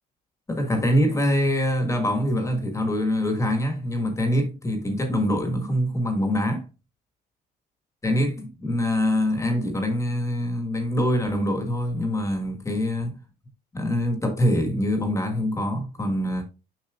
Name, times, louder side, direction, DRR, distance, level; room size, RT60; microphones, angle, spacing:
voice 1, 0.5-6.6 8.0-13.2 13.7-16.4, equal, 20° left, 1.5 m, -24 dB
7.3 x 5.9 x 2.4 m
cardioid pair, 110°, 17 cm